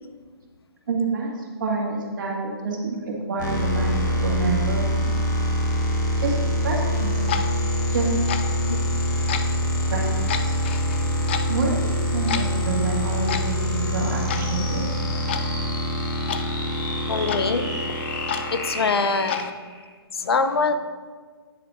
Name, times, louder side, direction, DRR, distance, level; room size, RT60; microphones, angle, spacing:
voice 1, 0.9-1.3 1.6-3.9 4.2-5.1 6.2-7.2 7.9-8.1 9.9-10.1 10.4-10.5 11.5-11.7 12.1-14.8, right 4 dB, 50° right, -1 dB, 2.1 m, -27 dB
sound 1, 3.4-19.9, equal, 45° left, 1.8 m, -25 dB
Clock, 6.9-19.5, left 7 dB, 25° left, 0.4 m, -34 dB
voice 2, 17.1-17.7 18.5-19.5 20.2-20.7, left 4 dB, 75° left, 9 dB, 0.8 m, -23 dB
9.8 x 5.0 x 5.0 m, 1.5 s
hypercardioid pair, 160°, 13 cm